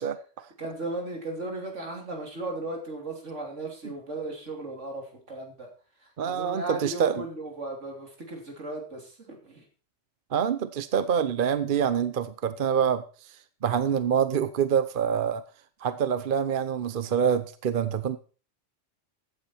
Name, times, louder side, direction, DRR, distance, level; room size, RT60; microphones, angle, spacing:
voice 1, 0.0-0.5 3.8-3.9 6.2-7.2 10.3-15.4 15.8-18.2, right 8 dB, 50° right, 12 dB, 0.9 m, -26 dB
voice 2, 0.6-5.7 6.0-9.6, right 2 dB, 80° right, 2 dB, 3.4 m, -36 dB
14.5 x 9.0 x 4.4 m, 0.38 s
omnidirectional pair, 1.2 m